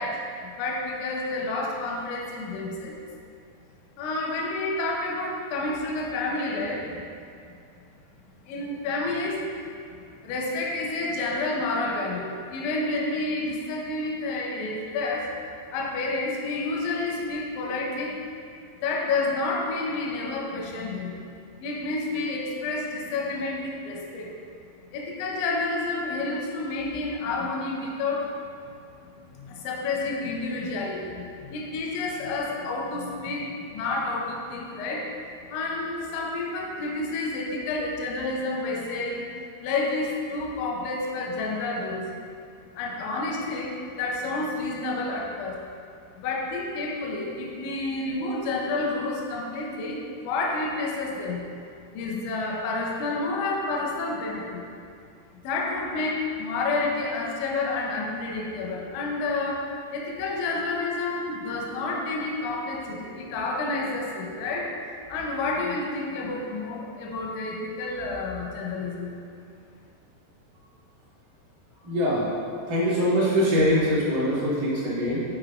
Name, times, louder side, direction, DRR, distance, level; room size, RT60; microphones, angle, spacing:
voice 1, 0.0-2.9 4.0-6.9 8.4-15.3 15.7-18.2 18.8-21.2 21.6-24.3 24.9-28.4 29.0-35.1 35.5-42.1 42.7-45.6 46.2-51.4 51.9-54.6 55.4-64.7 65.1-69.1, left 3 dB, 85° left, -1 dB, 3.0 m, -29 dB
voice 2, 71.8-72.3 72.7-75.2, equal, 85° right, -11 dB, 1.8 m, -23 dB
8.8 x 4.8 x 2.5 m, 2.4 s
omnidirectional pair, 5.4 m